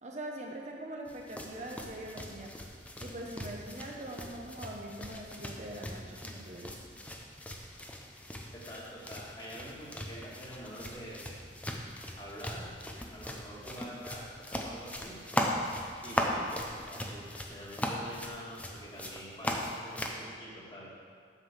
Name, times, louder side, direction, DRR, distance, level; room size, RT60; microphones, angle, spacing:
voice 1, 0.0-2.5 3.0-6.8, right 1 dB, 40° right, 0 dB, 0.9 m, -42 dB
sound 1, 1.1-20.2, left 1 dB, 10° left, 0.6 m, -39 dB
voice 2, 8.5-11.3 12.2-12.7 13.1-14.2 14.5-15.2 16.0-20.9, equal, 25° left, -5 dB, 2.0 m, -46 dB
8.1 x 6.1 x 7.3 m, 2.2 s
head